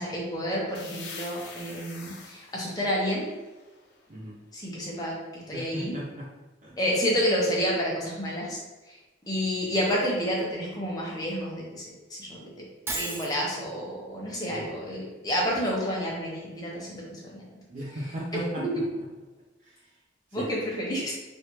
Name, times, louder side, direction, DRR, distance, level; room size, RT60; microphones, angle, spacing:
voice 1, 0.0-3.3 4.5-5.9 6.8-8.6 8.9-9.0 9.3-11.8 12.1-12.6 12.9-17.4 18.3-18.7 20.3-21.1, equal, 20° left, -4 dB, 0.7 m, -29 dB
sound 1, 0.7-4.4, left 4 dB, 70° left, 0.5 m, -45 dB
voice 2, 5.5-6.3 6.6-6.8 14.5-15.0 17.7-19.0 19.6-20.0 20.3-20.5, right 1 dB, 45° right, -9 dB, 0.7 m, -37 dB
Shatter, 12.9-13.4, right 2 dB, 15° right, 0.3 m, -32 dB
3.2 x 2.6 x 2.9 m, 1.2 s
head